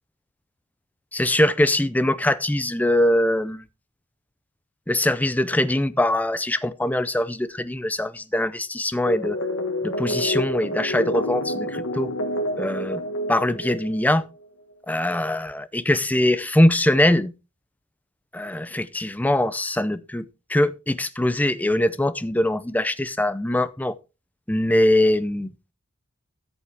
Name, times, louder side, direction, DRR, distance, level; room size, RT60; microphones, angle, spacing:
voice 1, 1.1-3.6 4.9-9.4 9.8-12.1 12.6-13.0 13.3-14.2 14.9-17.3 18.3-24.0 24.5-25.5, left 1 dB, 5° left, 0.4 m, -22 dB
sound 1, 9.1-14.2, equal, 85° left, 1.5 m, -28 dB
13.5 x 7.1 x 3.4 m
head